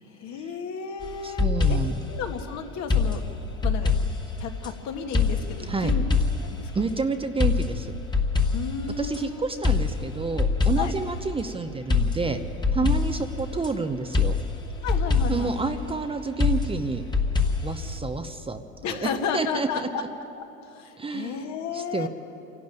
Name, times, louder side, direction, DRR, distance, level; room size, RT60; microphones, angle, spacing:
voice 1, 0.1-1.8 2.1-3.2 3.6-4.1 4.4-6.0 6.4-7.0 8.5-9.6 10.8-10.9 12.8-12.9 14.8-15.6 18.8-20.0 20.4-22.1, left 6 dB, 55° left, 4 dB, 1.9 m, -33 dB
sound 1, 1.0-2.1 2.9-4.7 5.1-6.6 7.4-9.2 9.6-11.1 11.9-13.7 14.1-15.6 16.4-18.0, left 4 dB, 15° left, 1.6 m, -24 dB
voice 2, 1.2-2.0 5.7-5.9 6.7-7.9 9.0-12.4 12.7-14.3 15.3-17.0 17.6-18.6 18.9-19.9 21.0-21.4 21.7-22.1, right 4 dB, 15° right, 7 dB, 0.8 m, -29 dB
27.0 x 12.0 x 9.0 m, 3.0 s
supercardioid pair, 110°, 34 cm